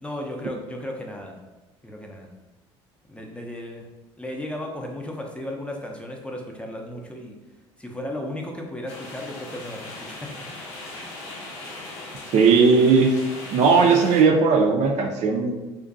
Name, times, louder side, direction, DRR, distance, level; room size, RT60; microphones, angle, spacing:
voice 1, 0.0-1.4 1.8-2.3 3.1-3.9 4.2-7.4 7.8-10.3, left 1 dB, 10° left, 0 dB, 0.5 m, -35 dB
sound 1, 8.9-14.2, left 2 dB, 75° left, 0.6 m, -39 dB
voice 2, 12.3-13.1 13.5-15.5, right 5 dB, 55° right, 2 dB, 0.4 m, -17 dB
2.5 x 2.2 x 2.5 m, 1.1 s
hypercardioid pair, 60°, 14 cm